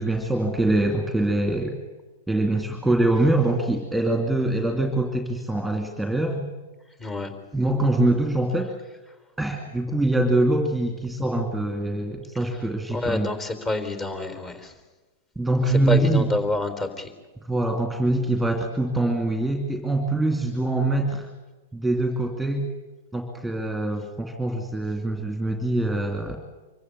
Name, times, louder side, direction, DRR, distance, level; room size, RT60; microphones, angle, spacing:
voice 1, 0.0-1.7 2.3-6.5 7.5-8.7 9.4-13.3 15.4-16.2 17.5-21.3 21.7-22.7 23.1-26.4, right 2 dB, ahead, 3 dB, 2.4 m, -24 dB
voice 2, 7.0-7.3 12.3-12.6 12.9-14.8 15.7-17.1, left 2 dB, 25° left, 8 dB, 3.9 m, -28 dB
25.0 x 15.5 x 9.6 m, 1.2 s
hypercardioid pair, 130°, 0 cm